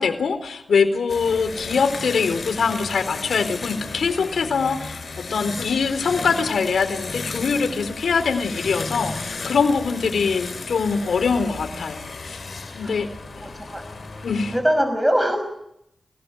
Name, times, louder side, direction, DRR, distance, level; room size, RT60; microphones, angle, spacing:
voice 1, 0.0-12.4 12.7-13.1 14.2-14.5, left 5 dB, 85° left, 9 dB, 4.0 m, -23 dB
sound 1, 1.1-14.6, left 3 dB, 60° left, 7.7 m, -34 dB
voice 2, 13.4-13.8 14.5-15.4, equal, 10° right, 7 dB, 5.6 m, -22 dB
26.5 x 20.0 x 9.2 m, 0.77 s
cardioid pair, 65°, 0 cm